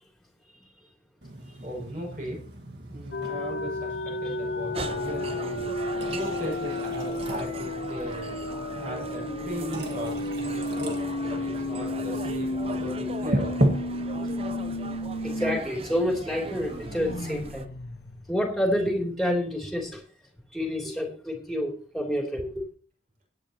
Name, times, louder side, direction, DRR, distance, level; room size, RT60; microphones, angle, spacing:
sound 1, 1.2-17.5, right 1 dB, 75° right, 1.8 m, -36 dB
voice 1, 1.6-2.4 2.9-5.6 6.1-8.3 8.8-10.2 10.5-13.6, equal, 50° right, 6.4 m, -37 dB
sound 2, 3.1-15.6 15.9-16.0 16.4-19.1, left 2 dB, 80° left, 1.1 m, -33 dB
sound 3, 4.7-17.7, right 3 dB, 35° right, 0.6 m, -39 dB
voice 2, 15.2-17.7 18.3-20.0 20.5-22.6, equal, ahead, 3.1 m, -28 dB
18.0 x 9.7 x 3.0 m
head